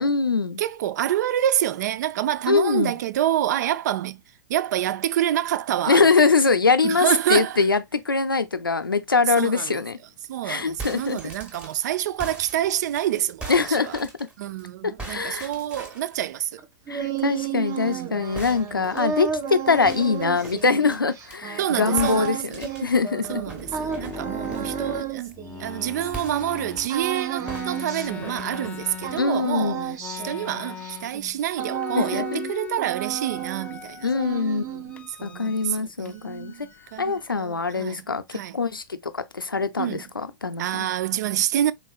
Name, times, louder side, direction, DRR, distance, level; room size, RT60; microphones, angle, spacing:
voice 1, 0.0-0.6 2.5-2.9 5.9-10.0 10.4-11.2 13.5-14.1 14.8-15.5 16.9-23.4 29.2-30.0 32.0-32.4 34.0-34.8 35.2-36.5 37.0-38.8 39.1-40.9, left 4 dB, 90° left, 0.5 m, -23 dB
voice 2, 0.6-4.2 4.5-6.3 6.8-7.6 9.4-9.8 10.3-14.0 14.4-16.5 17.8-18.3 21.6-22.6 23.3-30.0 30.2-34.1 35.2-38.6 39.8-40.0 40.6-41.7, right 12 dB, 55° right, 0.3 m, -27 dB
sound 1, 10.6-14.6 15.0-16.2 18.3-21.4 22.0-24.8 26.1-27.1 27.5-29.3, right 2 dB, 10° right, 1.1 m, -41 dB
sound 2, 16.6-26.4 26.9-28.8 29.0-32.5 32.8-33.8 34.1-35.1, right 9 dB, 30° right, 0.8 m, -32 dB
sound 3, 23.3-26.9 27.4-29.5 30.0-31.2 31.5-32.8 33.2-34.4 34.9-35.8 36.1-37.2, left 6 dB, 10° left, 0.4 m, -39 dB
3.6 x 3.2 x 2.3 m
figure-of-eight pair, 100°, 11 cm